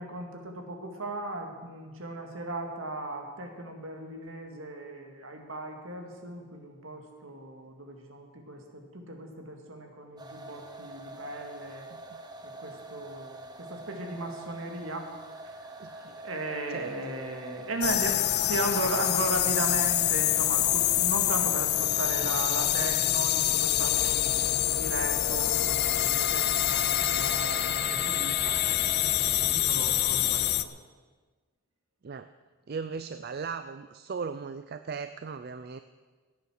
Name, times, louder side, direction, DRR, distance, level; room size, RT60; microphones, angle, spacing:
voice 1, 0.0-11.9 12.4-29.1 29.3-30.8, right 2 dB, 65° right, 4 dB, 2.1 m, -37 dB
sound 1, 10.2-29.5, right 1 dB, 20° right, 1.0 m, -45 dB
voice 2, 11.9-12.2 15.8-16.2 16.7-17.0 29.4-29.8 32.0-32.3 32.7-35.8, right 5 dB, 45° right, 11 dB, 0.4 m, -38 dB
sound 2, 17.8-30.6, left 13 dB, 50° left, 0.5 m, -26 dB
16.0 x 9.5 x 6.4 m, 1.4 s
head